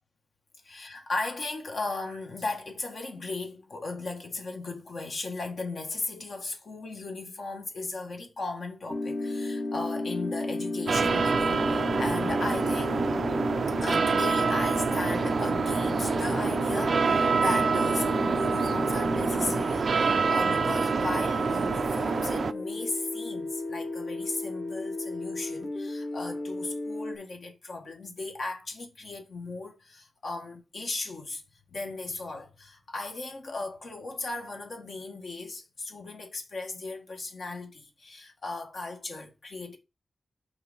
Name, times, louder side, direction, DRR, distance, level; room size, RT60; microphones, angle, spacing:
voice 1, 0.6-13.1 13.8-31.4 31.7-39.8, left 3 dB, 60° left, 1.6 m, -36 dB
sound 1, 8.9-27.2, left 2 dB, 40° left, 1.1 m, -33 dB
sound 2, 10.9-22.5, right 5 dB, 60° right, 0.3 m, -26 dB
5.8 x 4.1 x 5.4 m
wide cardioid pair, 135°, 0 cm